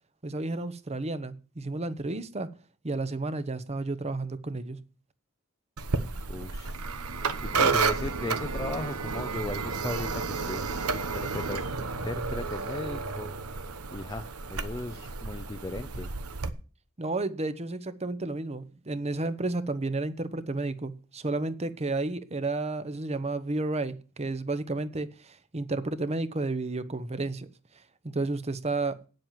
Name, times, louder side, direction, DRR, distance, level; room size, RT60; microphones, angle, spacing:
voice 1, 0.2-2.5 2.8-4.8 17.0-27.5 28.0-29.0, right 2 dB, 30° right, 0.9 m, -32 dB
sound 1, 5.8-16.5, right 4 dB, 90° right, 1.0 m, -31 dB
voice 2, 6.3-6.8 7.4-13.3 13.9-16.1, left 2 dB, 20° left, 0.5 m, -37 dB
9.2 x 7.7 x 7.4 m
head